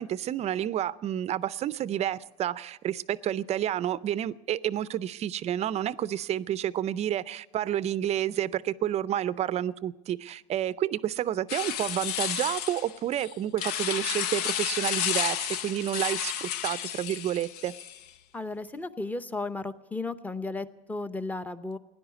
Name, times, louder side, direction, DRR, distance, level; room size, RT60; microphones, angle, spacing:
voice 1, 0.0-17.7, right 11 dB, 35° right, 19 dB, 0.5 m, -30 dB
sound 1, 11.5-18.1, left 10 dB, 75° left, 0.9 m, -32 dB
voice 2, 18.3-21.8, left 3 dB, 10° left, 13 dB, 0.7 m, -34 dB
16.5 x 10.5 x 8.2 m, 1.1 s
supercardioid pair, 115°, 20 cm